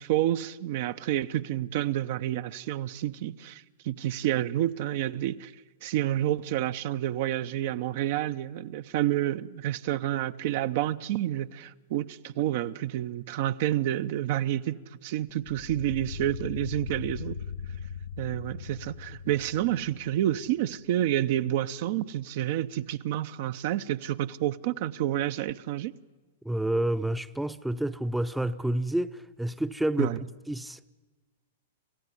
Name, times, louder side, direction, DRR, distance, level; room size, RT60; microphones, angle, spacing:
voice 1, 0.0-5.5 5.8-17.4 18.2-25.9 30.0-30.2, right 13 dB, 55° right, 0.7 m, -29 dB
sound 1, 15.4-20.6, left 6 dB, 75° left, 0.7 m, -39 dB
voice 2, 26.4-30.8, right 1 dB, 5° right, 0.7 m, -29 dB
26.5 x 15.0 x 9.9 m
hypercardioid pair, 115°, 0 cm